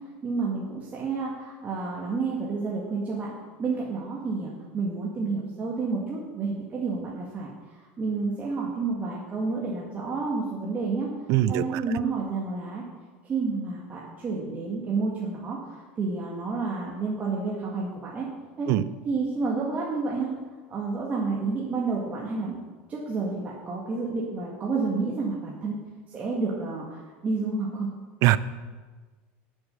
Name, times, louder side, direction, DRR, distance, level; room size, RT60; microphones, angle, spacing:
voice 1, 0.2-3.3 3.6-11.1 11.5-12.8 13.3-18.3 18.6-18.7 19.1-20.3 20.7-22.6 22.9-25.8 26.1-27.9, right 4 dB, 25° right, -4 dB, 1.8 m, -30 dB
voice 2, 11.3-11.8 18.7-18.8 28.2-28.4, right 14 dB, 55° right, 16 dB, 0.5 m, -21 dB
11.0 x 7.2 x 6.7 m, 1.4 s
supercardioid pair, 135°, 6 cm